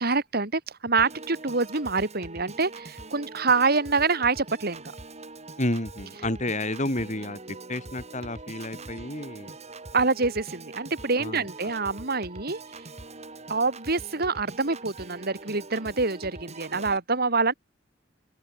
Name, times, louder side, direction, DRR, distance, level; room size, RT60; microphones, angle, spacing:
voice 1, 0.0-4.8 9.9-12.6 13.5-17.5, right 4 dB, 55° right, 3.0 m, -26 dB
Piano / Organ, 1.0-17.0, right 3 dB, 35° right, 4.8 m, -43 dB
voice 2, 5.6-7.4 7.7-9.5 11.2-11.4, left 1 dB, 40° left, 7.4 m, -30 dB
open air
head